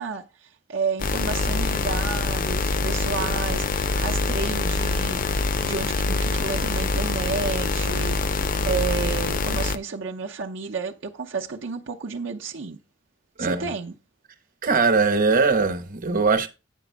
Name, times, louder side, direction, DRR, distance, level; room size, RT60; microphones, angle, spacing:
voice 1, 0.0-12.8 13.4-13.9, right 5 dB, 70° right, 0.7 m, -31 dB
sound 1, 1.0-9.8, left 3 dB, 45° left, 0.5 m, -25 dB
voice 2, 13.4-13.7 14.6-16.5, right 4 dB, 45° right, 1.1 m, -21 dB
9.2 x 5.0 x 4.7 m
head